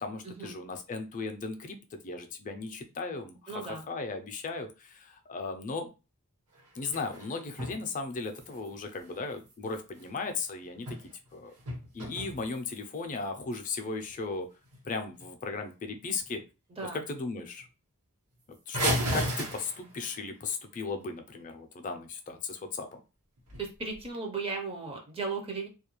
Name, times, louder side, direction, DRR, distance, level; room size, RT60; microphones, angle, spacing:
voice 1, 0.0-5.9 6.8-10.9 11.3-11.5 11.9-14.5 14.8-16.4 16.9-17.7 18.7-23.0, left 4 dB, 35° left, 6 dB, 0.4 m, -36 dB
voice 2, 3.5-3.8 16.8-17.0 23.6-25.7, right 4 dB, 25° right, 2 dB, 0.5 m, -36 dB
sound 1, 6.5-7.8 8.1-10.1 10.6-11.3 11.6-13.0 13.5-13.6 14.0-14.2 14.6-14.8 15.1-15.5 15.9-16.4 16.8-16.9 17.2-17.3 17.6-17.7 18.7-20.1 23.4-24.0, right 1 dB, 85° right, 1.0 m, -35 dB
2.3 x 2.1 x 3.0 m, 0.30 s
head